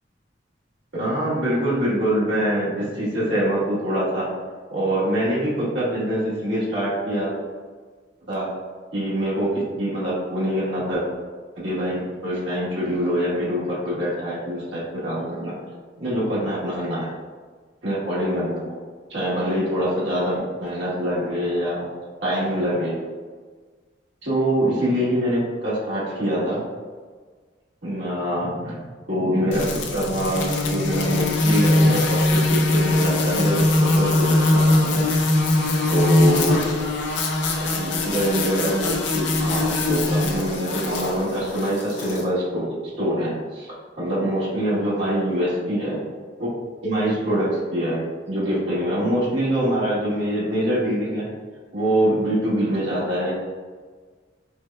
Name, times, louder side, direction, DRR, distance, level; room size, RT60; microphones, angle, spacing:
voice 1, 0.9-4.3 4.7-7.3 8.3-8.5 8.9-11.0 11.6-15.5 16.0-17.1 17.8-18.6 19.1-21.9 22.2-23.0 24.2-26.6 27.8-28.8 29.1-35.0 35.9-36.6 37.6-42.7 43.0-46.0 46.4-46.5 46.8-48.0 48.3-51.3 51.7-53.3, equal, 75° right, -9 dB, 1.4 m, -24 dB
sound 1, 29.5-42.2, left 2 dB, 70° left, 0.5 m, -21 dB
6.0 x 2.1 x 2.3 m, 1.5 s
head